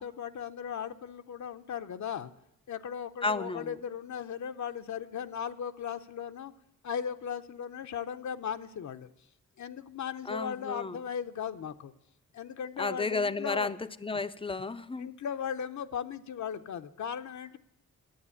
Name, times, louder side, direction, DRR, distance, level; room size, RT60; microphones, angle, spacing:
voice 1, 0.0-2.3 2.7-6.5 6.8-9.1 9.6-11.9 12.3-13.7 15.0-17.6, left 8 dB, 60° left, 9 dB, 0.7 m, -37 dB
voice 2, 3.2-3.8 10.3-11.0 12.8-15.1, left 3 dB, 15° left, 12 dB, 0.5 m, -32 dB
11.5 x 9.1 x 8.3 m, 0.83 s
cardioid pair, 100°, 33 cm